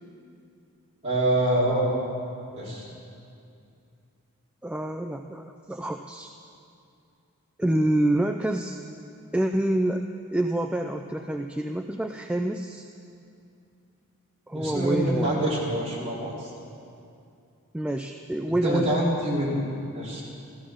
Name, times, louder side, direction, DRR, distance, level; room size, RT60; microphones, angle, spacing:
voice 1, 1.0-1.8 2.5-2.9 14.5-16.5 18.6-19.7 19.9-20.2, right 1 dB, 30° right, -7 dB, 4.1 m, -25 dB
voice 2, 4.6-6.3 7.6-8.8 9.3-10.0 10.3-12.9 14.5-15.5 17.7-19.0, right 1 dB, 5° right, 4 dB, 0.3 m, -27 dB
15.0 x 14.0 x 6.3 m, 2.5 s
head